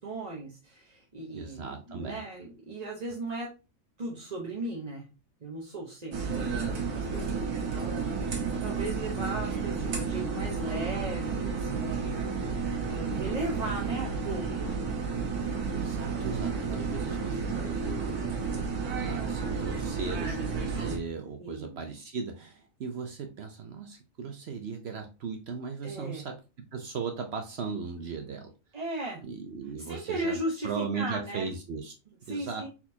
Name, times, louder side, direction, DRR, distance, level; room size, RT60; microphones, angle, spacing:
voice 1, 0.0-3.5 4.0-5.1 5.4-8.1 8.6-12.1 12.9-14.7 21.4-21.8 25.8-26.3 28.7-29.2 29.8-31.5 32.3-32.7, right 2 dB, 35° right, -3 dB, 0.8 m, -37 dB
voice 2, 1.3-2.2 15.7-18.2 18.9-28.5 29.2-30.4 30.6-31.9 32.3-32.6, right 5 dB, 60° right, 4 dB, 0.7 m, -37 dB
sound 1, 6.1-21.0, right 5 dB, 90° right, 1.7 m, -31 dB
4.3 x 4.2 x 2.7 m, 0.30 s
omnidirectional pair, 1.6 m